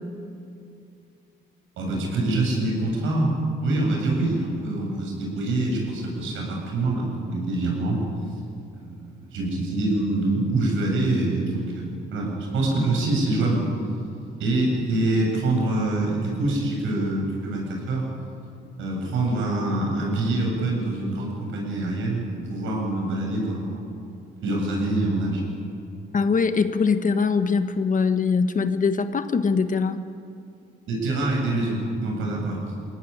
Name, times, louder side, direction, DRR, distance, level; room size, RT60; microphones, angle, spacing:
voice 1, 1.8-3.3 3.6-8.0 8.7-13.7 14.4-18.0 18.8-24.0 24.4-25.5 30.9-32.9, right 2 dB, 80° right, -1 dB, 7.8 m, -25 dB
voice 2, 26.1-30.0, left 5 dB, 40° left, 10 dB, 1.4 m, -22 dB
23.0 x 17.5 x 9.9 m, 2.6 s
cardioid pair, 90°, 20 cm